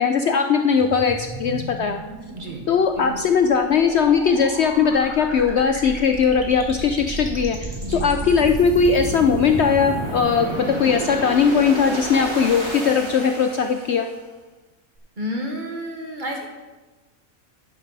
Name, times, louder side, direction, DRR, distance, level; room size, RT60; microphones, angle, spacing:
voice 1, 0.0-2.0 2.7-14.1, left 6 dB, 60° left, 6 dB, 0.8 m, -19 dB
sound 1, 0.8-14.2, right 1 dB, 20° right, 1.6 m, -32 dB
voice 2, 2.3-2.6 3.0-3.2 7.8-8.1 15.2-16.5, equal, 35° right, 1 dB, 1.6 m, -31 dB
10.5 x 10.0 x 4.1 m, 1.2 s
omnidirectional pair, 1.5 m